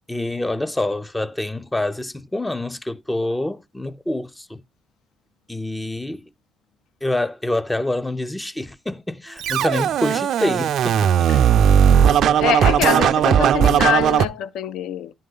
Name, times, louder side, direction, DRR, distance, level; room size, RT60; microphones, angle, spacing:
voice 1, 0.1-4.6 5.5-6.2 7.0-11.3, left 1 dB, 10° left, 0.4 m, -26 dB
Scratching (performance technique), 9.4-14.3, right 9 dB, 70° right, 0.3 m, -17 dB
voice 2, 12.4-15.1, left 9 dB, 80° left, 0.4 m, -24 dB
10.5 x 3.8 x 3.8 m
cardioid pair, 90°, 0 cm